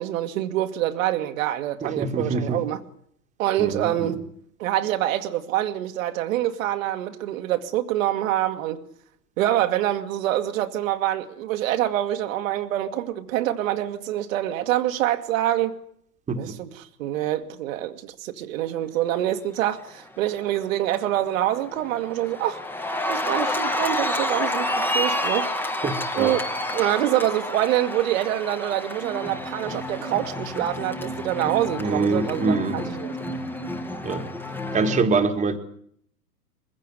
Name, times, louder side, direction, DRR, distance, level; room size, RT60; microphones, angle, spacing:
voice 1, 0.0-2.8 3.4-4.2 4.6-8.8 9.4-15.8 16.3-22.6 23.1-25.5 26.1-26.4 26.7-33.2, right 13 dB, 55° right, 1.9 m, -26 dB
voice 2, 1.8-2.6 3.6-4.1 16.3-16.5 25.8-26.4 31.8-32.8 34.0-34.2 34.7-35.6, right 4 dB, 15° right, 2.0 m, -24 dB
Cheering, 20.2-20.6 20.9-35.0, left 1 dB, 5° left, 1.6 m, -29 dB
22.0 x 16.0 x 9.8 m
figure-of-eight pair, 105°, 49 cm